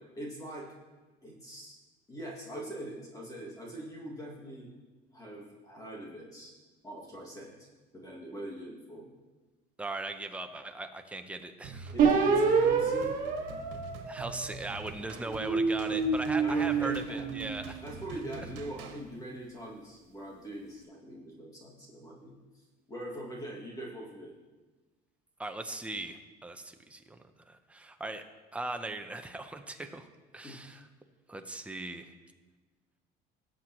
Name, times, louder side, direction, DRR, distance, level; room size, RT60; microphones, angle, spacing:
voice 1, 0.2-0.7 1.2-1.8 2.1-4.7 5.1-6.5 6.8-7.7 7.9-9.0 11.9-13.2 15.8-16.0 16.4-17.2 17.8-22.3 22.9-24.3 30.4-30.6, right 1 dB, 20° left, -3 dB, 2.1 m, -42 dB
voice 2, 9.8-11.9 14.1-17.8 25.4-27.2 27.5-28.3 28.5-30.1 30.3-30.9 31.3-32.1, right 2 dB, 5° right, 6 dB, 0.7 m, -39 dB
sound 1, 11.6-19.0, right 5 dB, 90° right, 1.4 m, -46 dB
sound 2, 12.0-14.7 15.3-17.7, right 5 dB, 50° right, 1.7 m, -28 dB
18.5 x 7.7 x 3.0 m, 1.3 s
cardioid pair, 145°, 18 cm